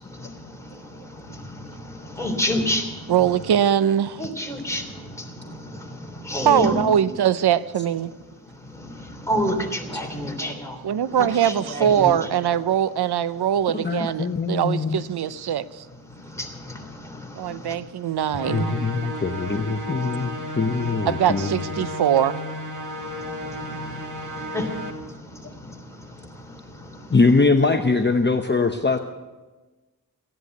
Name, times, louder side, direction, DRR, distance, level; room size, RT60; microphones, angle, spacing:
voice 1, 2.2-2.8 4.2-4.8 6.3-6.8 9.3-10.5 11.7-12.1 16.4-16.5 24.5-24.6, equal, 10° left, 2 dB, 3.2 m, -25 dB
voice 2, 3.1-4.2 6.4-8.1 10.8-15.8 17.4-18.7 21.1-22.4, right 9 dB, 90° right, 15 dB, 0.6 m, -22 dB
voice 3, 13.7-15.0 18.5-21.9 27.1-29.0, left 3 dB, 30° left, 5 dB, 0.8 m, -22 dB
sound 1, 18.3-24.9, equal, 55° right, 2.5 m, -33 dB
16.0 x 10.5 x 8.1 m, 1.2 s
wide cardioid pair, 85°, 38 cm